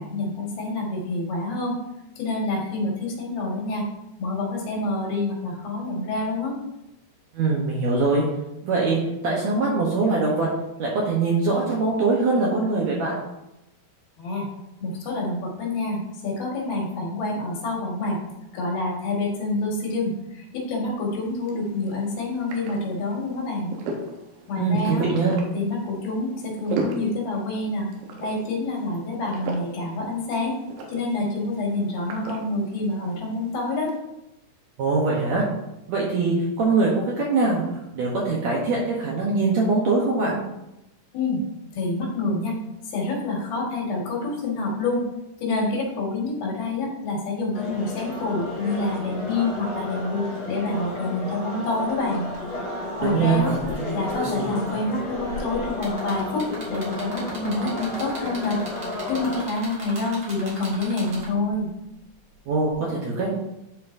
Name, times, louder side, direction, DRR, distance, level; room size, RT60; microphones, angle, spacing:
voice 1, 0.0-1.8 2.2-3.9 4.2-6.5 14.2-14.5 14.8-18.2 18.5-23.7 24.5-25.1 25.5-27.9 28.2-30.5 30.9-33.9 41.1-41.4 41.7-42.6 42.8-45.1 45.4-52.3 53.0-53.5 53.9-58.6 59.1-61.7, left 2 dB, 90° left, -3 dB, 3.7 m, -27 dB
voice 2, 7.3-8.2 8.6-10.5 10.8-13.2 24.6-25.3 34.8-35.4 35.9-37.6 37.9-40.4 53.0-53.4 62.5-63.3, right 3 dB, 70° right, -3 dB, 1.7 m, -22 dB
sound 1, 21.1-34.0, right 2 dB, 90° right, 2.7 m, -38 dB
sound 2, 47.5-59.5, left 2 dB, 70° left, 3.0 m, -33 dB
sound 3, 51.8-51.9 52.2-52.5 53.1-61.5 62.7-62.8, right 1 dB, 45° right, 1.9 m, -37 dB
11.0 x 4.4 x 2.6 m, 0.89 s
omnidirectional pair, 4.2 m